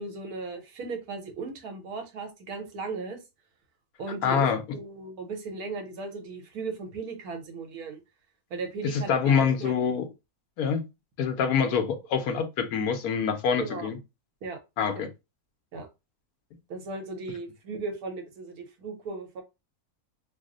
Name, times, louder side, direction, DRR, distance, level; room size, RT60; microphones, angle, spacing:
voice 1, 0.0-3.2 4.0-4.5 4.7-8.0 8.5-9.7 13.6-13.9 14.4-14.6 15.0-15.1 15.7-15.9 16.7-19.4, right 4 dB, 80° right, 1.3 m, -36 dB
voice 2, 4.2-4.6 8.9-10.1 10.6-10.8 11.2-14.0 14.8-15.1, left 6 dB, 80° left, 1.1 m, -25 dB
3.0 x 2.0 x 3.6 m
omnidirectional pair, 1.6 m